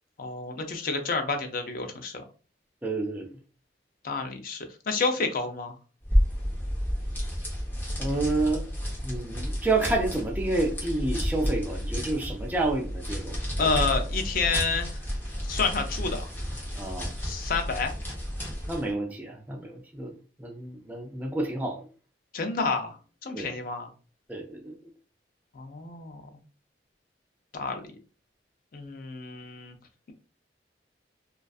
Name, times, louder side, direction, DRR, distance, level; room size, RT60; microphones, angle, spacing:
voice 1, 0.2-2.2 4.0-5.7 13.6-15.0 15.4-16.3 17.2-18.0 22.3-23.0 23.2-23.9 25.5-26.2 27.5-27.8 28.7-29.8, left 4 dB, 50° left, 6 dB, 0.5 m, -29 dB
voice 2, 2.8-3.3 8.0-8.6 9.0-13.7 16.8-17.1 18.7-20.1 20.4-21.9 23.3-23.5 24.3-24.8, right 2 dB, 10° right, 0 dB, 0.3 m, -29 dB
sound 1, 6.0-18.9, equal, 10° left, 0.7 m, -31 dB
2.4 x 2.3 x 2.3 m, 0.36 s
head